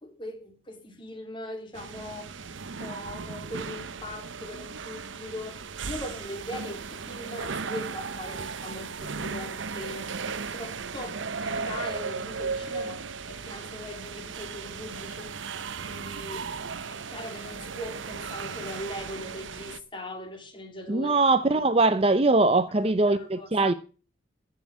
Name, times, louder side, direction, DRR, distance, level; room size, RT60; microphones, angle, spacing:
voice 1, 0.0-2.3 2.8-10.1 10.5-15.4 15.8-16.5 16.9-21.2 21.5-21.6 23.0-23.7, left 1 dB, 25° left, 2.7 m, -40 dB
sound 1, 1.7-19.8, right 5 dB, 75° right, 0.8 m, -36 dB
voice 2, 20.9-23.7, right 2 dB, 30° right, 0.6 m, -22 dB
14.5 x 5.8 x 8.5 m
head